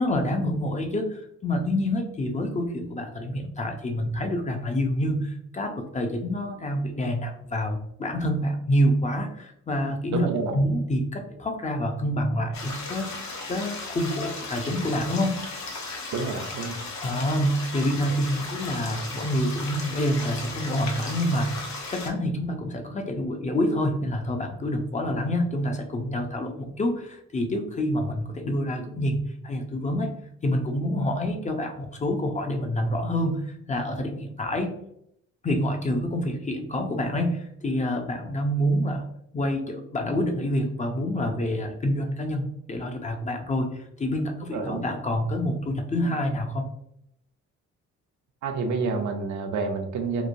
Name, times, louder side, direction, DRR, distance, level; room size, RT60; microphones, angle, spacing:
voice 1, 0.0-10.3 10.5-15.4 17.0-30.1 30.4-34.8 35.4-39.0 39.3-46.7, equal, 25° left, 4 dB, 0.4 m, -27 dB
voice 2, 10.1-10.6 16.1-16.8 44.5-44.8 48.4-50.3, right 4 dB, 70° right, 4 dB, 0.6 m, -28 dB
sound 1, 12.5-22.1, left 3 dB, 65° left, 0.8 m, -36 dB
3.0 x 2.1 x 2.5 m, 0.73 s
cardioid pair, 90°, 30 cm